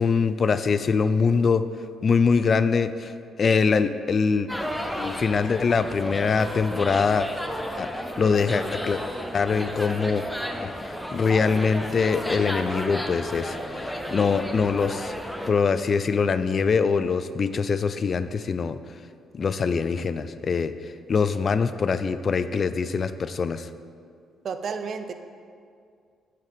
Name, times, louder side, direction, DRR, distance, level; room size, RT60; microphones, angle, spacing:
voice 1, 0.0-1.7 2.0-4.5 5.0-7.3 7.8-7.9 8.2-9.0 9.3-10.3 10.6-10.7 11.1-15.1 15.5-18.8 19.3-23.7, left 5 dB, 45° left, 12 dB, 0.3 m, -23 dB
sound 1, 4.5-15.5, equal, 5° left, 0.6 m, -33 dB
voice 2, 24.4-25.1, right 5 dB, 60° right, 9 dB, 0.5 m, -31 dB
9.3 x 5.8 x 3.5 m, 2.3 s
cardioid pair, 90°, 0 cm